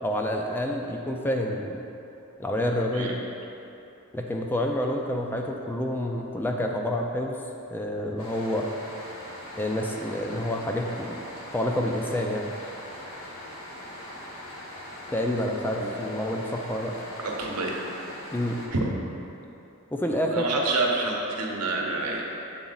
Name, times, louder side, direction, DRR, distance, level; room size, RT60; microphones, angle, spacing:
voice 1, 0.0-1.9 2.4-3.2 4.1-7.4 7.7-8.7 9.6-11.2 11.5-12.5 15.1-16.9 18.3-18.6 19.9-20.5, left 1 dB, 10° left, 1 dB, 0.3 m, -28 dB
sound 1, 8.2-18.7, left 1 dB, 65° left, 1.2 m, -41 dB
voice 2, 17.2-17.7 18.7-18.8 20.3-22.2, right 3 dB, 90° right, -1 dB, 0.9 m, -27 dB
7.2 x 3.9 x 3.9 m, 2.8 s
head